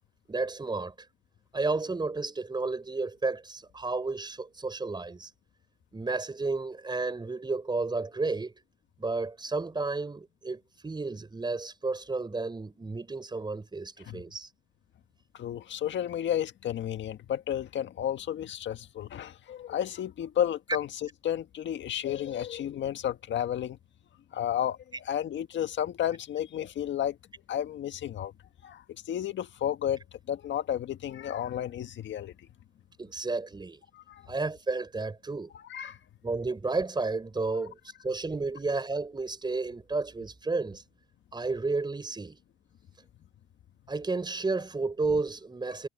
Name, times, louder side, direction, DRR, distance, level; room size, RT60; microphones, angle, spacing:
voice 1, 0.3-0.9 1.5-5.3 5.9-8.5 9.0-14.5 33.0-33.8 34.3-35.5 36.2-37.8 38.0-40.8 41.3-42.4 43.9-45.9, right 3 dB, 20° right, 5.0 m, -32 dB
voice 2, 15.3-23.8 24.3-27.2 27.5-28.3 28.6-32.3 33.9-34.3 35.7-36.0 37.5-37.6, left 10 dB, 70° left, 1.7 m, -32 dB
cardioid pair, 90°, 20 cm